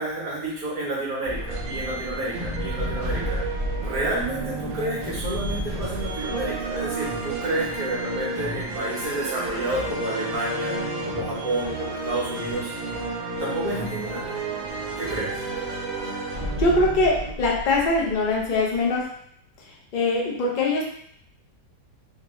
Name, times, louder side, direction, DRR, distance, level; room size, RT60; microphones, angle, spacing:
voice 1, 0.0-3.4 3.8-10.8 11.0-12.7 13.4-14.2 15.0-15.3, right 1 dB, 60° right, -6 dB, 1.5 m, -30 dB
sound 1, 1.2-18.9, equal, 40° right, 0.7 m, -32 dB
sound 2, 1.5-17.3, right 7 dB, 85° right, 1.3 m, -37 dB
voice 2, 16.6-19.1 19.6-20.9, left 2 dB, 60° left, -2 dB, 0.5 m, -23 dB
3.5 x 2.9 x 3.0 m, 0.67 s
omnidirectional pair, 1.9 m